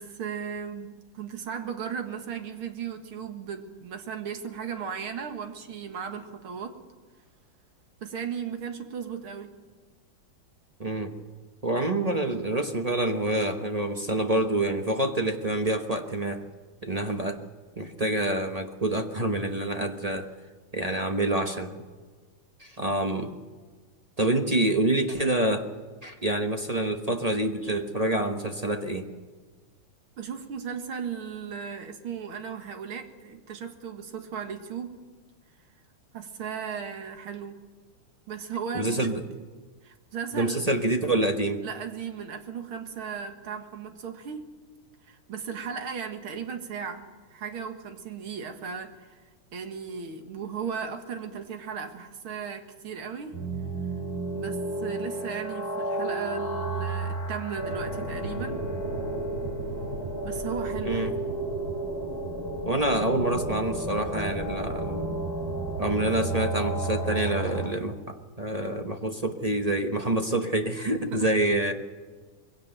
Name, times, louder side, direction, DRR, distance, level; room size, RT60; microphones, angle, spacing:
voice 1, 0.0-6.8 8.0-9.5 30.2-35.0 36.1-37.6 38.3-39.1 39.8-40.6 41.6-44.5 45.0-49.2 49.5-53.4 54.3-58.6 60.2-61.2 70.8-71.3, right 7 dB, 70° right, 6 dB, 2.6 m, -36 dB
voice 2, 10.8-11.1 11.6-16.4 16.8-17.4 17.8-20.3 20.7-21.7 22.6-23.3 24.2-25.7 26.0-29.1 38.7-39.2 40.3-41.6 60.8-61.1 62.6-65.2 65.8-71.7, right 1 dB, 30° right, 5 dB, 0.7 m, -27 dB
sound 1, 53.3-67.7, right 2 dB, 10° left, 5.5 m, -32 dB
21.5 x 17.0 x 7.8 m, 1.4 s
omnidirectional pair, 2.4 m